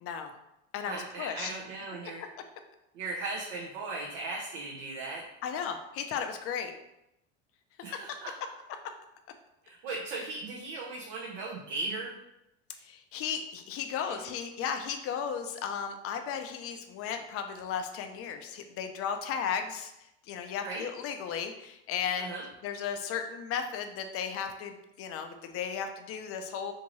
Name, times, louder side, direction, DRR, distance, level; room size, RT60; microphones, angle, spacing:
voice 1, 0.0-0.3 0.7-1.5 5.4-6.7 8.1-8.2 9.9-10.0 12.8-26.7, left 7 dB, 40° left, 7 dB, 0.5 m, -35 dB
voice 2, 0.9-2.2 2.9-5.2 7.8-8.3 9.6-12.1 14.1-14.2 20.6-20.9 22.2-22.4, right 3 dB, 65° right, -3 dB, 0.7 m, -37 dB
2.8 x 2.5 x 3.0 m, 0.86 s
hypercardioid pair, 90°, 35 cm